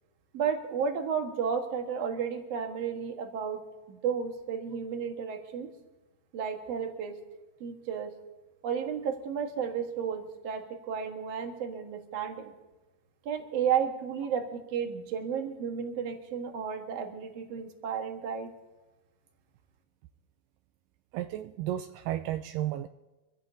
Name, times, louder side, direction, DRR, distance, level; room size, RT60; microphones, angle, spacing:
voice 1, 0.3-3.6 3.9-5.7 6.3-7.2 7.6-8.1 8.6-12.5 13.3-18.5, right 7 dB, 55° right, 4 dB, 2.0 m, -32 dB
voice 2, 21.1-22.9, right 13 dB, 85° right, 8 dB, 1.9 m, -33 dB
24.5 x 15.5 x 2.7 m, 1.2 s
omnidirectional pair, 4.3 m